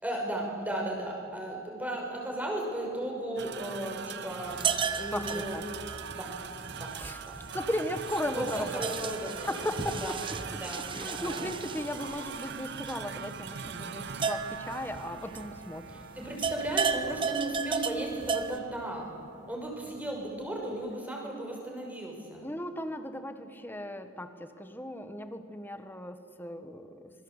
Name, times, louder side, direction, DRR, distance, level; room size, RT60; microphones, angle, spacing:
voice 1, 0.0-5.6 6.1-6.3 6.8-6.9 7.2-7.4 8.3-9.7 10.0-10.2 10.5-11.4 15.9-19.1 19.5-22.4, right 1 dB, 10° right, 0 dB, 5.7 m, -36 dB
sound 1, 3.4-20.9, right 6 dB, 55° right, 0.8 m, -43 dB
sound 2, 4.5-18.6, right 5 dB, 25° right, 1.0 m, -35 dB
voice 2, 5.1-5.6 7.0-7.2 7.5-8.8 9.4-10.1 10.9-16.0 22.4-27.0, left 1 dB, 10° left, 8 dB, 1.5 m, -36 dB
26.5 x 23.0 x 8.2 m, 2.5 s
head